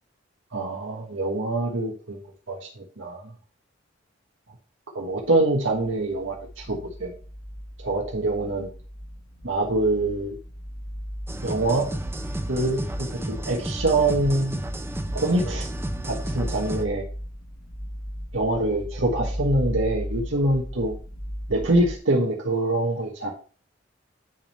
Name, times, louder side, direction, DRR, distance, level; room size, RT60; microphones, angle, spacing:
voice 1, 0.5-2.2 2.5-3.3 4.9-7.1 7.8-8.7 9.4-10.4 11.4-11.9 12.5-14.6 15.1-15.7 16.0-17.0 18.3-20.9 21.5-23.3, right 2 dB, 90° right, -1 dB, 1.4 m, -25 dB
sound 1, 6.0-22.0, equal, 70° left, 4.1 m, -36 dB
sound 2, 11.3-16.9, right 1 dB, 15° right, 0.7 m, -33 dB
10.5 x 3.7 x 4.3 m, 0.38 s
head